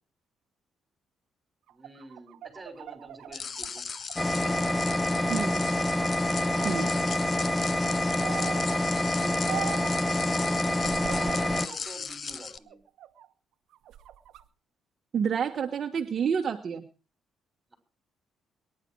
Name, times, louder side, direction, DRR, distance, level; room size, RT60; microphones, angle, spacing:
voice 1, 1.7-3.8 4.3-5.2 5.6-5.9 6.3-7.6 8.3-9.5 10.3-10.6 11.0-12.8, right 2 dB, 15° right, 8 dB, 5.9 m, -46 dB
sound 1, 1.7-4.9 5.3-6.2 6.6-7.2 8.2-8.7 9.5-10.0 10.8-11.8 12.3-13.3 13.7-14.4, right 12 dB, 80° right, 1.1 m, -41 dB
sound 2, 3.3-12.6, left 5 dB, 45° left, 1.0 m, -38 dB
sound 3, 4.2-11.7, left 1 dB, 10° left, 1.0 m, -27 dB
voice 2, 5.3-5.6 6.6-6.9 15.1-16.9, right 7 dB, 50° right, 4 dB, 1.4 m, -28 dB
23.0 x 11.0 x 4.7 m, 0.36 s
cardioid pair, 90°, 0 cm